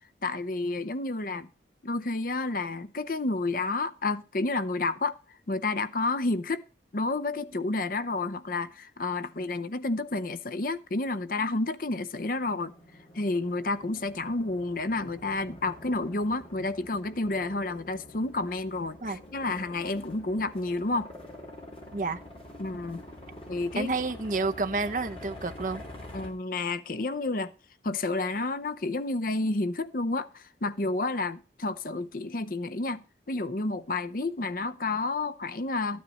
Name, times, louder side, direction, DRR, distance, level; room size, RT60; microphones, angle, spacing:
voice 1, 0.2-1.5 1.8-5.2 5.5-6.6 6.9-12.7 13.1-21.1 22.6-23.0 23.5-23.9 26.1-27.5 27.8-36.0, left 2 dB, 50° left, 0.7 m, -30 dB
sound 1, 12.4-26.3, left 1 dB, 30° left, 3.4 m, -46 dB
voice 2, 23.8-25.8, right 3 dB, 45° right, 0.8 m, -30 dB
13.5 x 9.4 x 4.2 m
head